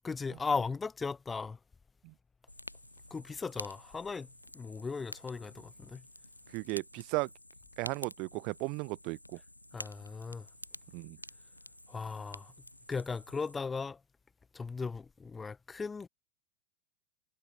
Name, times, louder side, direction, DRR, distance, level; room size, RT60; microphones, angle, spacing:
voice 1, 0.0-1.6 3.1-4.3 4.5-6.0 9.7-10.5 11.9-12.5 12.9-14.0 14.5-16.1, left 4 dB, 15° left, 0.3 m, -37 dB
Fire, 2.5-13.6, left 1 dB, 85° left, 0.6 m, -50 dB
voice 2, 6.5-7.3 7.8-9.4 10.9-11.2, right 29 dB, 45° right, 0.6 m, -35 dB
figure-of-eight pair, 90°, 0 cm